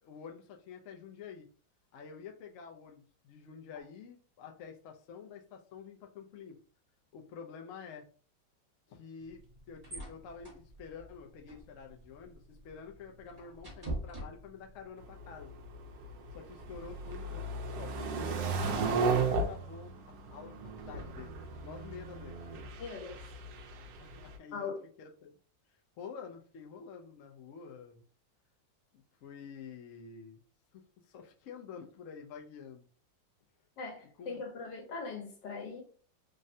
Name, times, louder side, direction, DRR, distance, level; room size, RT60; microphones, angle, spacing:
voice 1, 0.0-1.5 1.9-6.6 7.1-8.0 8.9-9.4 9.7-15.6 16.3-19.9 20.3-21.3 21.6-22.5 24.0-24.7 25.0-25.4 26.0-28.0 28.9-30.4 30.7-32.9 34.2-34.4, left 6 dB, 70° left, 0.8 m, -49 dB
sound 1, 9.2-14.9, right 1 dB, 15° right, 0.8 m, -45 dB
sound 2, 15.0-24.3, right 4 dB, 75° right, 1.1 m, -35 dB
voice 2, 22.8-23.2 24.5-24.8 33.8-35.8, left 4 dB, 85° left, 1.6 m, -40 dB
3.6 x 2.1 x 2.6 m
omnidirectional pair, 1.9 m